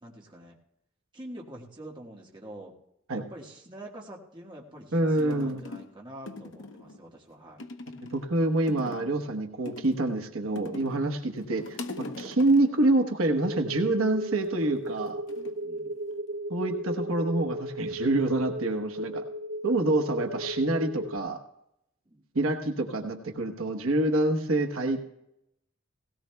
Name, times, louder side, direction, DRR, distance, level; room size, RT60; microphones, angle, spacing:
voice 1, 0.0-0.6 1.1-2.7 3.1-7.6 15.6-16.0 22.0-22.2, right 1 dB, 20° right, -1 dB, 1.5 m, -45 dB
sound 1, 4.8-4.9 5.2-5.9 6.3-7.0 7.6-8.3 8.7-9.2 9.7-11.1 11.4-12.8 14.4-14.8 15.3-16.4 16.7-17.1, left 2 dB, 65° left, 0.9 m, -42 dB
voice 2, 4.9-5.6 8.1-11.8 12.2-15.2 16.5-19.2 19.6-21.4 22.3-25.0, right 2 dB, 85° right, 5 dB, 1.1 m, -26 dB
sound 2, 13.3-21.2, right 1 dB, 65° right, 0.5 m, -35 dB
17.5 x 17.0 x 2.3 m, 0.82 s
head